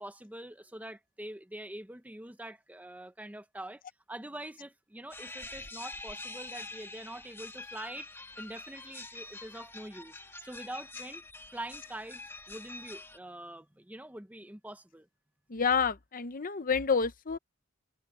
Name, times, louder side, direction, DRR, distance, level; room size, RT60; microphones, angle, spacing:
voice 1, 0.0-3.8 4.1-8.1 8.4-11.2 11.5-15.1, right 1 dB, 5° right, 0.9 m, -44 dB
sound 1, 5.1-13.2, left 2 dB, 10° left, 2.4 m, -45 dB
voice 2, 15.5-17.4, left 5 dB, 40° left, 0.8 m, -29 dB
head